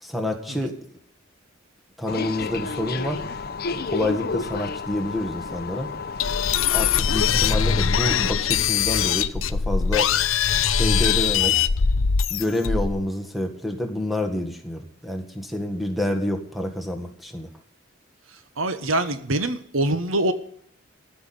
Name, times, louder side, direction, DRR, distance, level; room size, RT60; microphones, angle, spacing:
voice 1, 0.0-0.7 2.0-3.2 3.9-5.9 6.7-10.1 10.8-11.5 12.3-17.5, left 1 dB, ahead, 5 dB, 1.7 m, -28 dB
sound 1, 2.1-8.3, left 4 dB, 50° left, 0.7 m, -31 dB
sound 2, 6.2-13.0, left 7 dB, 85° left, 0.6 m, -22 dB
voice 2, 18.6-20.3, right 1 dB, 85° right, 10 dB, 1.3 m, -24 dB
14.5 x 6.2 x 8.6 m, 0.62 s
head